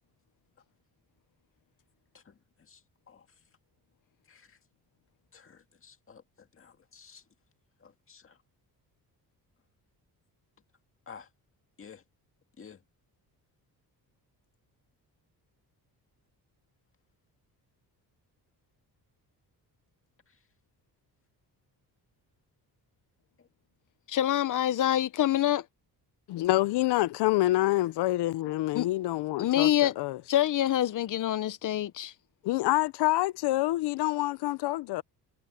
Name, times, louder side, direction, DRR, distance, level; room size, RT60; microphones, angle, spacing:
voice 1, 2.1-3.3 4.3-4.6 5.3-7.2 7.8-8.4 11.1-11.3 11.8-12.0 12.6-12.8 20.3-20.4 23.4-23.5, left 6 dB, 35° left, 2.0 m, -53 dB
voice 2, 24.1-25.6 28.7-28.9 29.4-29.9 30.3-32.1, left 12 dB, 55° left, 0.9 m, -26 dB
voice 3, 26.3-30.2 32.4-35.0, left 17 dB, 85° left, 0.6 m, -27 dB
cardioid pair, 140°, 39 cm